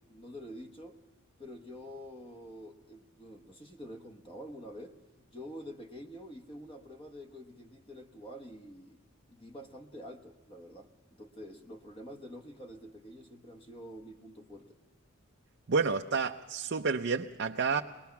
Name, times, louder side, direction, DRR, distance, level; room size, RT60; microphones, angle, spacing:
voice 1, 0.1-1.0 1.4-9.0 9.3-14.8, equal, 25° left, 1.2 m, -47 dB
voice 2, 15.7-17.8, right 4 dB, 55° right, 0.6 m, -30 dB
22.5 x 20.0 x 5.8 m
head